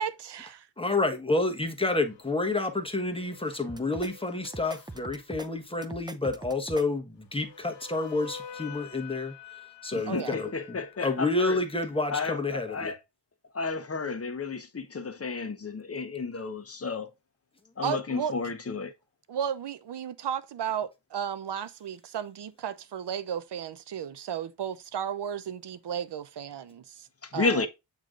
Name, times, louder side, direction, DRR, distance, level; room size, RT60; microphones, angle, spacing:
voice 1, 0.0-0.6 10.1-10.4 17.8-18.3 19.3-27.1 27.3-27.7, right 8 dB, 70° right, 0.7 m, -34 dB
voice 2, 0.8-9.3 9.8-12.9, left 2 dB, 10° left, 1.3 m, -29 dB
sound 1, 2.0-5.2 7.3-12.1, left 7 dB, 70° left, 1.0 m, -48 dB
sound 2, 3.7-4.1 4.4-5.5 5.8-6.8, right 2 dB, 10° right, 0.5 m, -41 dB
voice 3, 9.9-11.6 12.1-13.0 13.5-17.1 17.8-18.9 27.2-27.7, left 4 dB, 35° left, 1.0 m, -32 dB
7.9 x 3.2 x 3.7 m
cardioid pair, 75°, 43 cm